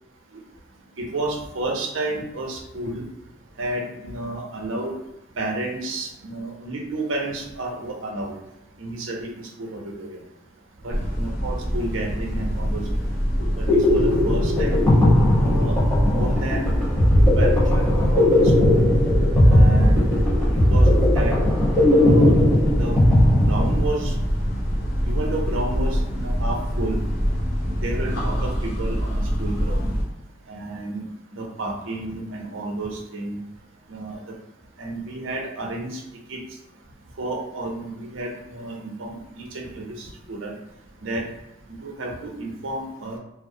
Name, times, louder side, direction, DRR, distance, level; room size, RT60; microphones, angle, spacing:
voice 1, 1.0-3.0 3.6-4.9 5.4-8.3 8.8-9.3 9.6-10.2 10.8-13.0 13.6-13.7 13.9-14.9 15.4-15.8 16.0-16.8 17.2-18.7 19.4-20.1 20.7-21.3 21.9-22.3 22.8-22.9 23.5-24.1 25.1-27.0 27.8-29.9 30.5-31.0 31.3-33.4 33.9-34.2 34.8-36.0 36.3-36.4 37.2-40.5 41.0-41.2 41.8-43.2, right 2 dB, 70° right, 0 dB, 0.5 m, -31 dB
sound 1, 10.9-30.0, equal, 50° left, 0.6 m, -25 dB
sound 2, 13.4-24.2, left 1 dB, 5° left, 0.9 m, -18 dB
2.3 x 2.0 x 2.6 m, 0.89 s
head